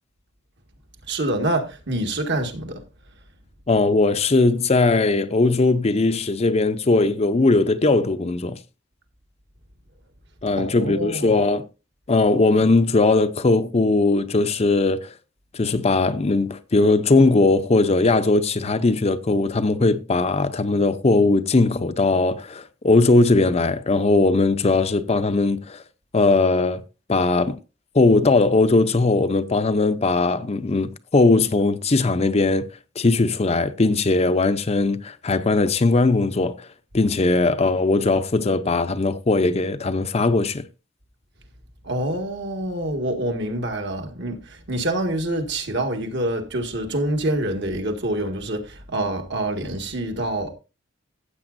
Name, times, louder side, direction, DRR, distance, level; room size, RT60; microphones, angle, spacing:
voice 1, 1.1-2.8 10.6-11.4 41.8-50.5, right 1 dB, 60° right, 1.9 m, -26 dB
voice 2, 3.7-8.6 10.4-11.6 12.1-15.1 15.5-25.8 26.1-26.8 27.1-27.6 27.9-32.7 33.0-36.7 36.9-40.6, left 3 dB, 35° left, 0.6 m, -19 dB
15.0 x 8.2 x 2.6 m
head